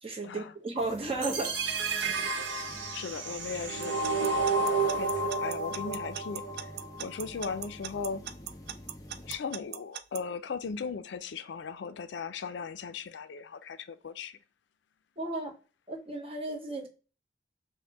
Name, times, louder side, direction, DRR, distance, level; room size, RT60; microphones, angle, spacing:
voice 1, 0.0-1.6 15.2-15.5 15.9-16.9, right 2 dB, 35° right, 0.8 m, -34 dB
sound 1, 0.8-9.4, left 1 dB, 20° left, 0.6 m, -49 dB
sound 2, 1.2-7.2, right 3 dB, 80° right, 0.8 m, -31 dB
voice 2, 2.9-4.0 4.6-6.7 7.0-8.3 9.3-14.4, left 5 dB, 75° left, 0.4 m, -38 dB
Alarm / Clock, 3.8-10.2, right 10 dB, 65° right, 0.3 m, -39 dB
5.1 x 2.1 x 2.8 m
head